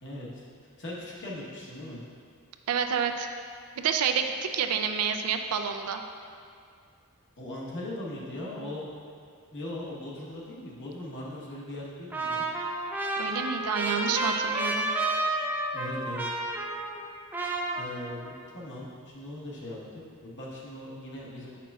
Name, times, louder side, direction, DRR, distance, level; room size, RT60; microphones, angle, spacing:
voice 1, 0.0-0.4 0.8-2.0 7.4-8.9 9.5-12.4 15.7-16.2 17.8-21.6, left 1 dB, 55° left, -5 dB, 1.1 m, -39 dB
voice 2, 2.7-3.3 3.8-6.0 13.2-14.9, right 7 dB, 85° right, 6 dB, 0.4 m, -29 dB
Trumpet, 12.1-17.1 17.3-18.3, right 2 dB, 10° right, 0.3 m, -31 dB
7.2 x 5.8 x 2.3 m, 2.3 s
head